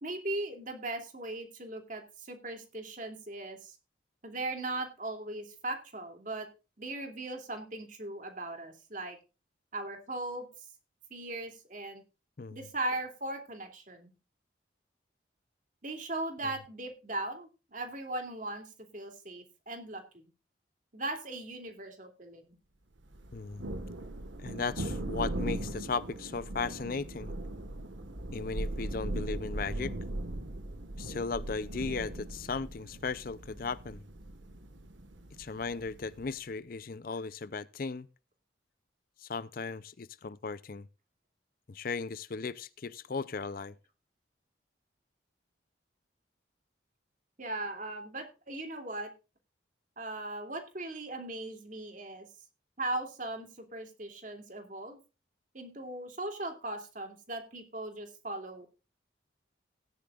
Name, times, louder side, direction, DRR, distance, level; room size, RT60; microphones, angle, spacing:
voice 1, 0.0-3.8 4.2-6.5 6.8-9.2 9.7-10.5 11.1-12.0 12.5-14.1 15.8-20.2 20.9-22.5 47.4-49.1 50.0-52.3 52.8-55.0 55.5-58.7, right 2 dB, 45° right, 2.7 m, -38 dB
Thunder, 23.1-36.3, right 1 dB, 85° right, 1.5 m, -39 dB
voice 2, 23.3-23.6 24.4-27.3 28.3-29.9 31.0-34.0 35.4-38.1 39.2-40.9 41.7-43.8, left 4 dB, 50° left, 0.5 m, -36 dB
16.5 x 10.5 x 2.4 m
head